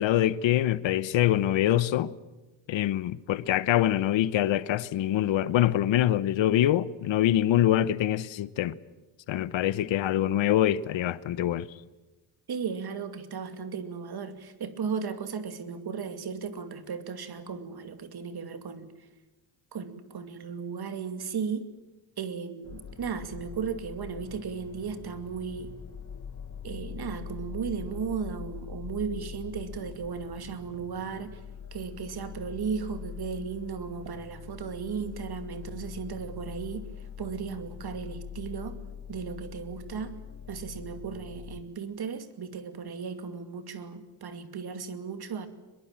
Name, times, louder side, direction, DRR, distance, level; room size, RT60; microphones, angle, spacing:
voice 1, 0.0-2.1 2.7-8.7 9.3-11.7, left 12 dB, 70° left, 1.0 m, -24 dB
voice 2, 12.5-18.9 19.7-21.7 22.2-25.7 26.6-31.4 31.7-36.9 37.2-38.8 39.1-40.1 40.5-45.5, right 6 dB, 55° right, 2.5 m, -35 dB
sound 1, 22.6-41.6, left 7 dB, 35° left, 1.5 m, -43 dB
23.0 x 21.5 x 8.9 m
cardioid pair, 90°, 46 cm